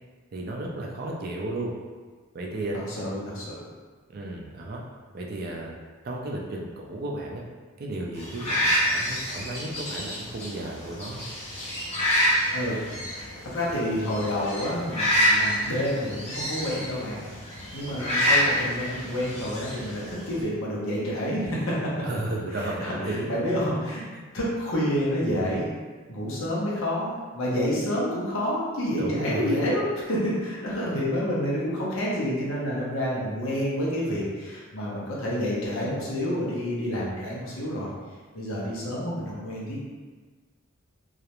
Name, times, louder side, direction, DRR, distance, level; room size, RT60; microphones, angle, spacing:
voice 1, 0.3-1.7 2.3-2.8 4.1-4.8 5.1-5.7 6.0-7.4 7.8-11.3 22.0-23.3 29.0-29.6 30.9-31.0, right 1 dB, 45° right, -1 dB, 0.3 m, -33 dB
voice 2, 3.0-3.7 12.5-12.8 13.4-17.2 17.7-21.9 22.6-24.0 24.3-25.7 26.1-37.9 38.3-39.8, equal, 70° left, -6 dB, 0.7 m, -28 dB
sound 1, 8.2-20.4, equal, 30° left, 0.6 m, -27 dB
2.3 x 2.0 x 2.9 m, 1.4 s
head